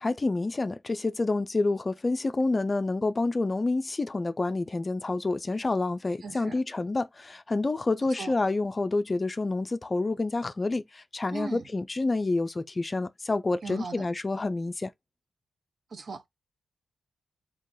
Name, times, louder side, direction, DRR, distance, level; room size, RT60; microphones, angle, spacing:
voice 1, 0.0-14.9, left 3 dB, 25° left, 0.4 m, -28 dB
voice 2, 6.2-6.6 8.0-8.3 11.3-11.7 13.6-14.1 15.9-16.3, right 4 dB, 50° right, 0.7 m, -39 dB
3.8 x 2.8 x 2.6 m
wide cardioid pair, 125°, 0 cm